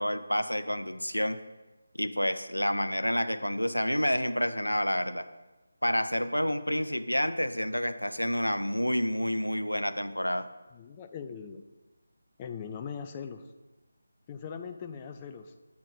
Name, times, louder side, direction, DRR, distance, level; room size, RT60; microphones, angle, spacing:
voice 1, 0.0-1.4 2.0-5.3 5.8-10.5, equal, 85° left, 11 dB, 0.4 m, -29 dB
voice 2, 10.7-11.6 12.4-13.4 14.3-15.5, left 6 dB, 20° left, 5 dB, 0.3 m, -40 dB
8.1 x 3.1 x 6.3 m, 1.1 s
figure-of-eight pair, 155°, 0 cm